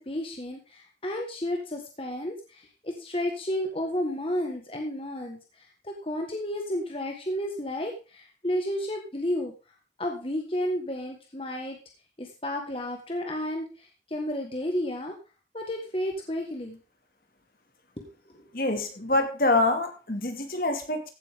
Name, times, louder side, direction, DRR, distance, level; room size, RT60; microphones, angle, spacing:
voice 1, 0.1-5.4 5.8-9.5 10.0-11.8 12.2-15.1 15.5-16.8 18.0-18.1, left 1 dB, 30° left, 2 dB, 1.7 m, -32 dB
voice 2, 18.5-21.1, left 2 dB, 55° left, 5 dB, 2.3 m, -26 dB
15.0 x 8.4 x 3.7 m, 0.32 s
head